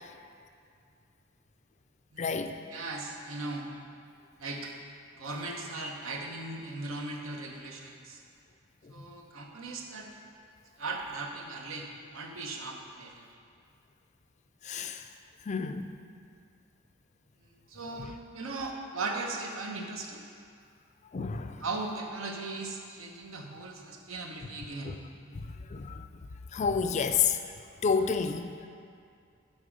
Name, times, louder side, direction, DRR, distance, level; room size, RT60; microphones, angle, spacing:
voice 1, 2.2-2.6 14.6-15.1 15.5-15.9 18.0-18.1 21.1-21.6 24.8-25.0 25.3-25.4 25.7-26.1 26.5-27.4 27.8-28.5, left 6 dB, 35° left, 7 dB, 0.4 m, -29 dB
voice 2, 2.7-3.7 4.4-4.7 5.1-8.2 8.9-10.1 10.8-13.3 17.4-20.2 21.6-25.0, right 3 dB, 80° right, 2 dB, 1.0 m, -38 dB
12.0 x 4.3 x 5.1 m, 2.3 s
head